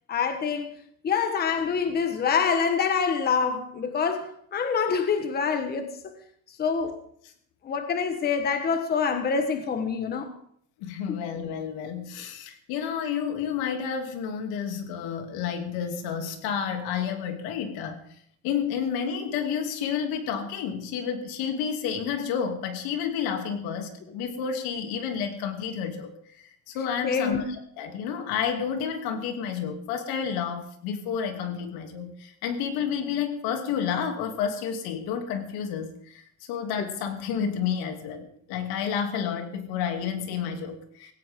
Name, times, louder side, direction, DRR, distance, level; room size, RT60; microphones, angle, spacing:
voice 1, 0.1-0.7 1.0-6.1 6.5-7.0 7.6-10.3 11.1-11.2 27.0-27.4, left 6 dB, 25° left, 1.3 m, -26 dB
voice 2, 10.8-18.0 18.4-27.4 27.8-41.1, left 7 dB, 80° left, 2.9 m, -30 dB
17.0 x 17.0 x 3.8 m
cardioid pair, 165°, 37 cm